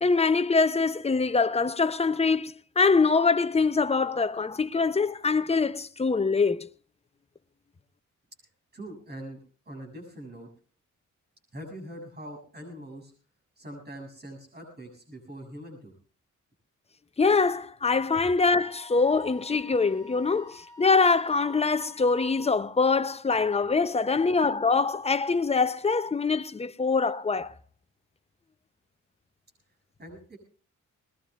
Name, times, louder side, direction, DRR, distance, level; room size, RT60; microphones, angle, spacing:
voice 1, 0.0-6.7 17.2-27.5, left 4 dB, 20° left, 0.6 m, -24 dB
voice 2, 8.7-9.4 9.7-10.5 11.5-13.1 13.6-15.9 24.3-24.4 30.0-30.4, right 1 dB, 30° right, 7.5 m, -43 dB
Wind instrument woodwind instrument, 18.5-22.5, left 1 dB, 90° right, 2.7 m, -49 dB
22.0 x 20.5 x 2.4 m
cardioid pair, 95°, 31 cm